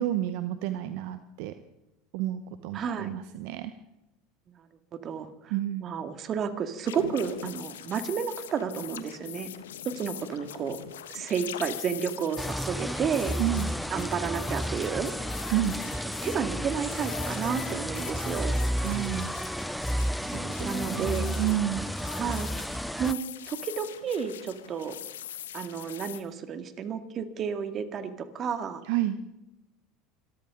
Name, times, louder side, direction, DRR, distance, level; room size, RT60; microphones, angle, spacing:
voice 1, 0.0-1.5 2.1-3.7 5.5-5.9 13.4-13.7 15.5-15.8 18.7-19.3 20.2-21.9 28.9-29.2, right 13 dB, 65° right, 10 dB, 0.9 m, -30 dB
voice 2, 2.7-3.1 4.5-4.7 5.0-5.6 5.8-9.5 9.9-10.8 11.1-13.3 13.9-15.1 16.2-18.6 20.6-21.3 22.2-22.5 23.0-23.2 23.5-25.0 25.5-28.8, right 7 dB, 40° right, 8 dB, 2.0 m, -31 dB
sound 1, 6.9-26.2, left 11 dB, 85° left, 1.1 m, -42 dB
sound 2, 12.4-23.1, equal, ahead, 0.5 m, -32 dB
25.5 x 14.0 x 3.8 m, 0.90 s
hypercardioid pair, 85°, 0 cm